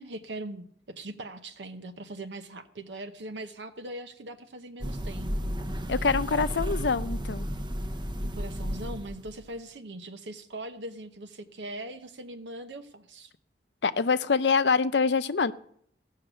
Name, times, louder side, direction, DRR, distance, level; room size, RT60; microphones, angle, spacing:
voice 1, 0.0-5.5 8.2-13.3, right 1 dB, 85° right, 6 dB, 0.8 m, -41 dB
sound 1, 4.8-9.4, equal, 25° right, 0.7 m, -33 dB
voice 2, 5.9-7.5 13.8-15.5, left 5 dB, 75° left, 13 dB, 0.6 m, -25 dB
15.5 x 6.6 x 7.9 m, 0.67 s
head